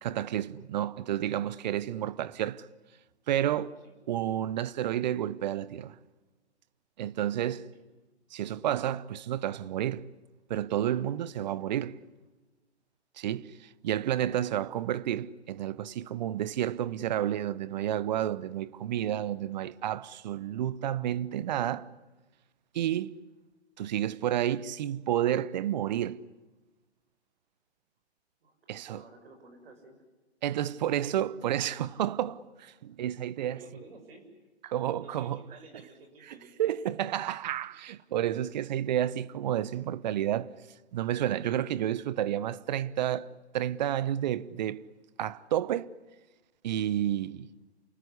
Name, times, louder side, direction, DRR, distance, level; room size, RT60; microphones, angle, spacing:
voice 1, 0.0-2.7 3.3-3.7 4.1-5.9 7.0-7.7 8.3-10.0 10.5-12.0 13.2-21.9 22.7-23.1 23.8-26.2 28.7-29.0 30.4-32.4 32.8-33.6 34.6-35.4 36.6-40.5 40.9-43.3 43.5-44.8 45.2-45.9 46.6-47.5, right 11 dB, 40° right, 0.9 m, -30 dB
voice 2, 3.4-4.0 7.7-7.8 28.4-30.0 32.2-32.3 33.1-34.3 35.0-36.6 47.1-47.3, right 3 dB, 60° right, 6.8 m, -53 dB
28.5 x 20.0 x 9.8 m
hypercardioid pair, 135°, 34 cm